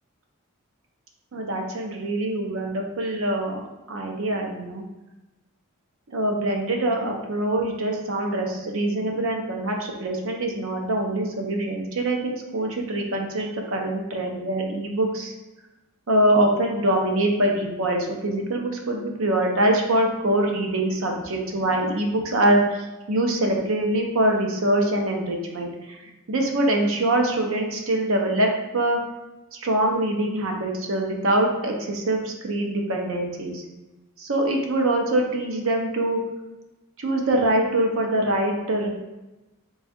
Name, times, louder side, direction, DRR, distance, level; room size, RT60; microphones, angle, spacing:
voice 1, 1.3-3.6 3.9-4.8 6.1-15.3 16.1-29.0 29.5-33.6 34.2-36.2 37.0-38.9, right 1 dB, 60° right, 1 dB, 0.6 m, -24 dB
3.4 x 2.3 x 4.2 m, 1.0 s
head